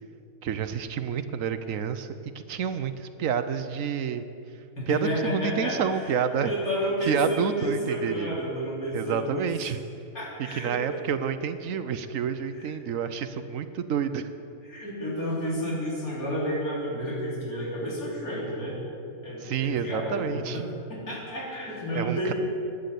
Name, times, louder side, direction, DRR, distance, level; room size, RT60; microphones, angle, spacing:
voice 1, 0.4-4.2 4.9-6.5 7.0-8.4 8.9-9.8 10.5-14.3 19.4-20.6 21.9-22.3, right 7 dB, 70° right, 10 dB, 1.1 m, -29 dB
voice 2, 4.8-9.5 10.1-11.0 12.6-12.7 14.7-18.8 19.1-20.6 20.9-22.3, equal, 80° left, -5 dB, 3.9 m, -31 dB
11.5 x 10.0 x 8.4 m, 2.6 s
omnidirectional pair, 1.5 m